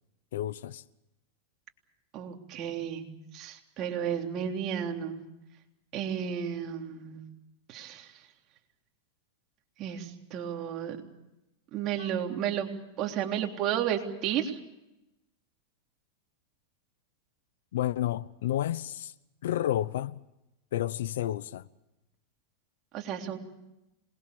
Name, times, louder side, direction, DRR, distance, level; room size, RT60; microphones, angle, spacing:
voice 1, 0.3-0.8 12.0-12.1 17.7-19.1 19.4-20.2 20.7-21.7, left 12 dB, 80° left, 0.9 m, -31 dB
voice 2, 2.1-3.0 3.3-5.2 5.9-7.2 7.7-8.1 9.8-11.0 11.7-12.7 13.0-14.6 22.9-23.4, right 9 dB, 35° right, 3.4 m, -32 dB
26.5 x 21.0 x 7.0 m
supercardioid pair, 140°, 0 cm